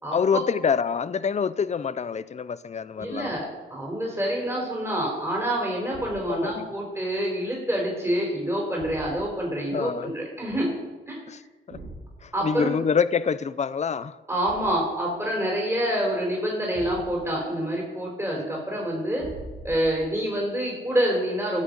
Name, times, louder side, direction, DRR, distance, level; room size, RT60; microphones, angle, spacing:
voice 1, 0.1-3.3 6.3-6.7 9.7-10.1 11.3-11.4 11.7-11.8 12.2-14.2, left 6 dB, 35° left, 16 dB, 0.5 m, -26 dB
voice 2, 3.0-3.5 3.7-10.7 11.1-11.2 12.3-12.7 14.3-19.3 19.6-21.6, right 1 dB, 10° right, -2 dB, 3.9 m, -27 dB
Thump thud, 5.9-6.4 8.7-9.5 11.7-12.2 14.4-14.9 16.7-17.4 19.2-20.1, right 2 dB, 85° right, 2.5 m, -42 dB
17.0 x 6.5 x 5.2 m, 1.2 s
cardioid pair, 80°, 21 cm